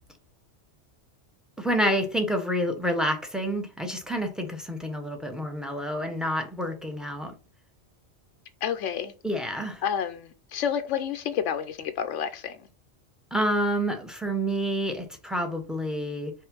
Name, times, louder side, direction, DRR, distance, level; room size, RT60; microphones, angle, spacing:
voice 1, 1.6-7.3 9.2-9.8 13.3-16.3, equal, ahead, 1.1 m, -28 dB
voice 2, 8.6-9.1 9.8-12.6, left 8 dB, 90° left, 0.9 m, -29 dB
5.5 x 4.5 x 3.8 m
omnidirectional pair, 1.2 m